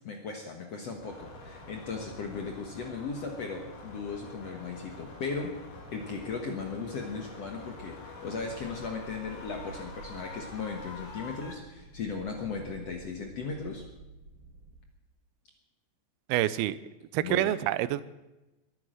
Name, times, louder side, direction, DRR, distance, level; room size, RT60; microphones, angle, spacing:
voice 1, 0.0-5.6 5.9-13.8 17.2-17.6, left 4 dB, 55° left, 3 dB, 2.0 m, -37 dB
sound 1, 1.0-11.5, left 2 dB, 75° left, 4.9 m, -46 dB
sound 2, 8.4-14.8, right 4 dB, 45° right, 2.4 m, -50 dB
voice 2, 16.3-16.8 17.1-18.0, right 14 dB, 85° right, 16 dB, 2.6 m, -27 dB
21.5 x 9.7 x 6.5 m, 1.0 s
omnidirectional pair, 4.3 m